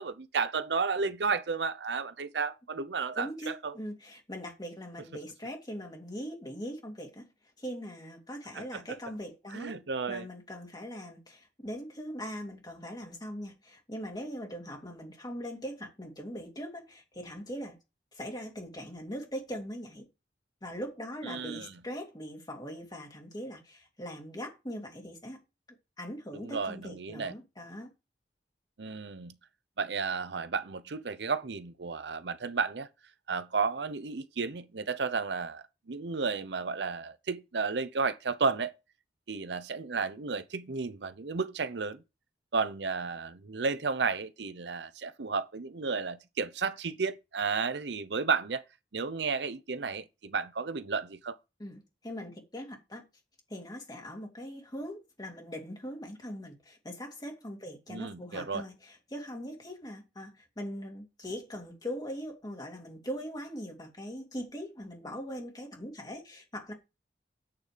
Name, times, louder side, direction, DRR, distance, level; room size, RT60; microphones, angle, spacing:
voice 1, 0.0-3.8 8.5-8.8 9.5-10.3 21.2-21.7 26.3-27.3 28.8-29.4 29.8-32.9 33.3-38.7 39.3-42.0 42.5-48.6 48.9-51.4 57.9-58.6, right 5 dB, 70° right, 0.7 m, -33 dB
voice 2, 3.2-7.3 7.6-9.8 10.1-17.8 18.1-20.1 20.6-25.4 26.0-27.9 51.6-53.0 53.5-66.7, equal, 25° left, 2.6 m, -41 dB
9.0 x 6.5 x 5.0 m
head